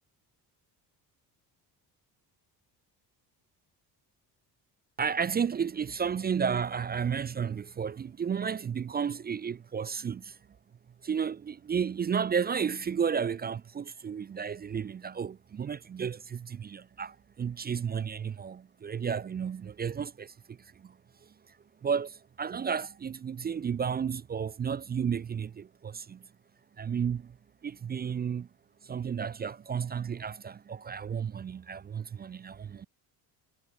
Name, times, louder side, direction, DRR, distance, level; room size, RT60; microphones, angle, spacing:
voice 1, 5.0-10.2 11.0-20.3 21.8-22.1 22.4-26.2 26.8-27.2 27.6-28.5 28.9-32.9, right 7 dB, 25° right, 0.4 m, -32 dB
cardioid pair, 110°, 41 cm